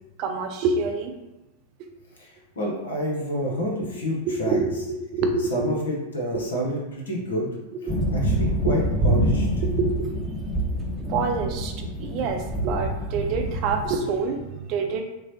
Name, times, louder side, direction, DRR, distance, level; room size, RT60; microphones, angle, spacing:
voice 1, 0.2-1.1 1.8-1.9 4.3-5.7 7.9-8.0 8.6-8.7 9.8-10.1 11.1-15.0, right 4 dB, 40° right, 5 dB, 0.5 m, -26 dB
voice 2, 2.2-4.6 5.5-7.5 8.1-9.5, equal, 65° left, -1 dB, 0.7 m, -28 dB
sound 1, 7.9-13.9, right 1 dB, 5° right, 0.8 m, -26 dB
6.0 x 2.0 x 2.7 m, 1.0 s
figure-of-eight pair, 90°, 0 cm